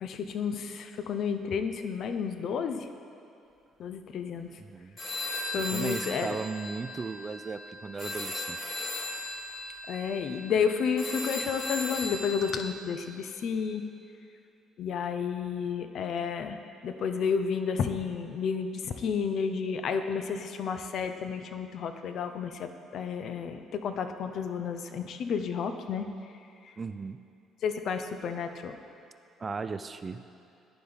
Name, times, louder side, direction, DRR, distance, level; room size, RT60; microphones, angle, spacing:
voice 1, 0.0-2.9 3.8-4.5 5.5-6.3 9.9-13.8 14.8-26.1 26.6-26.7 27.6-28.8, left 6 dB, 60° left, 8 dB, 0.4 m, -31 dB
sound 1, 5.0-12.7, left 2 dB, 35° left, 1.6 m, -37 dB
voice 2, 5.5-8.8 26.8-27.2 29.4-30.2, right 4 dB, 35° right, 10 dB, 0.3 m, -36 dB
11.5 x 4.0 x 3.4 m, 2.7 s
hypercardioid pair, 55°, 0 cm